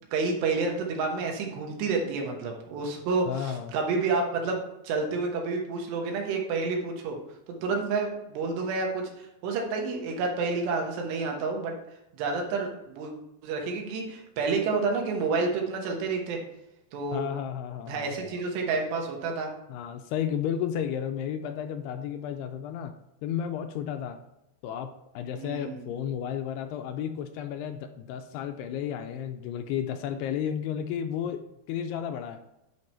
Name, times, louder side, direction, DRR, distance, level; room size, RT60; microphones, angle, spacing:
voice 1, 0.1-7.2 7.5-11.8 12.1-13.1 13.4-16.4 16.9-17.3 17.9-19.5 25.4-25.9, right 4 dB, 80° right, 2 dB, 3.4 m, -29 dB
voice 2, 3.3-3.7 17.1-18.4 19.7-22.9 23.2-24.2 24.6-31.4 31.7-32.4, left 9 dB, 80° left, 7 dB, 2.4 m, -33 dB
9.8 x 4.6 x 4.3 m, 0.89 s
omnidirectional pair, 4.9 m